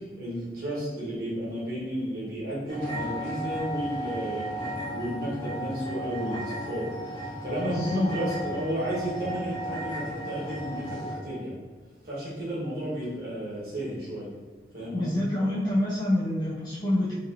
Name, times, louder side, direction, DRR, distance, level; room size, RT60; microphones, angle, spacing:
voice 1, 0.0-11.5 12.0-14.3 14.7-15.3, equal, 55° right, -8 dB, 1.2 m, -33 dB
sound 1, 2.7-11.2, right 1 dB, 50° left, 1.1 m, -35 dB
voice 2, 7.7-8.1 14.9-17.1, left 1 dB, 25° left, -5 dB, 0.3 m, -27 dB
3.9 x 2.6 x 2.7 m, 1.4 s
head